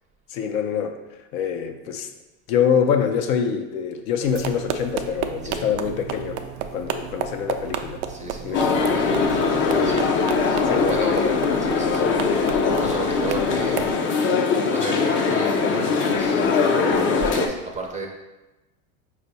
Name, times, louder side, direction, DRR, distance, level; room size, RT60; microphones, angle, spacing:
voice 1, 0.3-1.0 1.3-2.1 2.5-6.4 6.7-8.0 8.4-8.8 10.6-11.4, left 7 dB, 80° left, 5 dB, 0.7 m, -25 dB
sound 1, 4.2-14.0, right 8 dB, 80° right, 0.5 m, -32 dB
voice 2, 8.1-10.0 10.5-11.2 11.6-12.1 12.8-13.9 14.7-18.1, right 3 dB, 20° right, 1 dB, 0.5 m, -33 dB
sound 2, 8.5-17.5, left 5 dB, 30° left, 0.4 m, -21 dB
4.5 x 2.4 x 4.0 m, 1.1 s
supercardioid pair, 110°, 41 cm